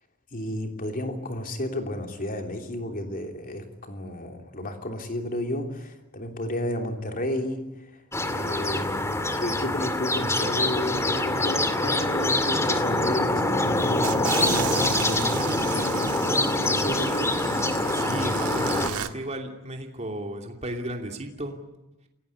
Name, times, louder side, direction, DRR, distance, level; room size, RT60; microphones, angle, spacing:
voice 1, 0.3-8.0 8.3-17.3, left 1 dB, 40° left, 4 dB, 3.3 m, -32 dB
sound 1, 8.1-18.9, left 2 dB, 15° left, 2.3 m, -25 dB
sound 2, 14.0-19.1, right 8 dB, 75° right, 1.6 m, -34 dB
voice 2, 17.9-21.6, right 1 dB, 30° right, 3 dB, 2.9 m, -34 dB
28.5 x 17.5 x 9.9 m, 0.99 s
head